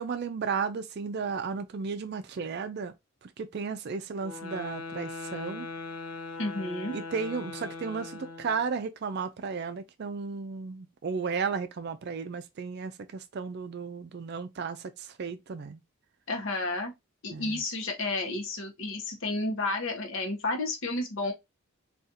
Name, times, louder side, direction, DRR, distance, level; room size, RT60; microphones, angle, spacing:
voice 1, 0.0-2.9 3.2-5.7 6.9-15.8 17.3-17.6, right 5 dB, 50° right, 0.4 m, -34 dB
sound 1, 4.2-8.7, left 3 dB, 85° left, 0.6 m, -40 dB
voice 2, 6.4-7.0 16.3-16.9 17.2-21.3, left 2 dB, 60° left, 0.8 m, -31 dB
3.9 x 2.4 x 2.6 m
head